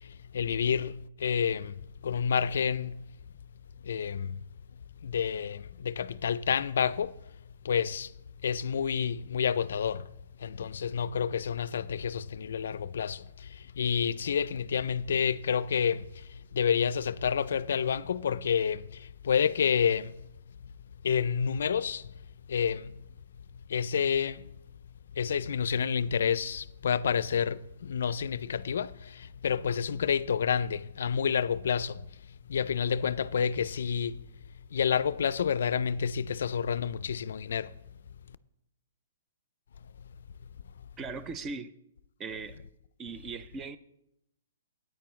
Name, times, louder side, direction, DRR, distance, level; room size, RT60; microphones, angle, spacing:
voice 1, 0.3-1.7 2.0-3.0 3.8-4.4 5.0-7.1 7.6-8.1 8.4-10.1 10.4-16.0 16.5-20.1 21.0-22.0 22.5-22.9 23.7-24.4 25.2-32.0 32.5-34.2 34.7-37.7, left 7 dB, 70° left, 0.3 m, -29 dB
voice 2, 41.0-41.7 42.2-42.6 43.0-43.8, right 4 dB, 15° right, 0.4 m, -39 dB
13.5 x 9.1 x 3.2 m
hypercardioid pair, 160°, 0 cm